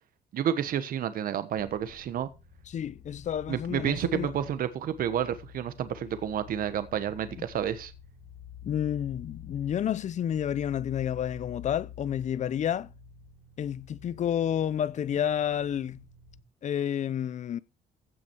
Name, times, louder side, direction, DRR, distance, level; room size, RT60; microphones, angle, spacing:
voice 1, 0.3-2.3 3.5-7.9, right 9 dB, 55° right, 1.3 m, -30 dB
sound 1, 1.5-16.4, left 9 dB, 75° left, 7.8 m, -49 dB
voice 2, 2.7-4.3 8.6-12.9 13.6-16.0 16.6-17.6, left 9 dB, 45° left, 0.6 m, -30 dB
15.5 x 6.0 x 4.6 m
cardioid pair, 110°, 17 cm